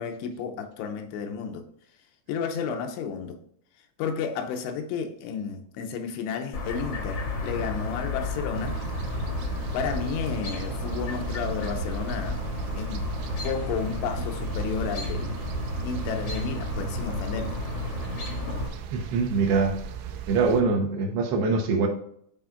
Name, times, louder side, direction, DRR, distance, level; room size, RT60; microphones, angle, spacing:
voice 1, 0.0-1.6 2.3-3.4 4.0-8.8 9.7-12.4 12.7-13.1 13.4-15.4 15.8-17.5, left 6 dB, 85° left, 3.0 m, -32 dB
Chirp tweet, 6.5-18.7, left 2 dB, 65° left, 1.1 m, -32 dB
sound 1, 8.6-20.6, right 8 dB, 90° right, 3.1 m, -37 dB
voice 2, 18.9-19.8 20.3-21.9, right 4 dB, 75° right, 2.8 m, -23 dB
11.0 x 4.4 x 2.4 m
omnidirectional pair, 5.1 m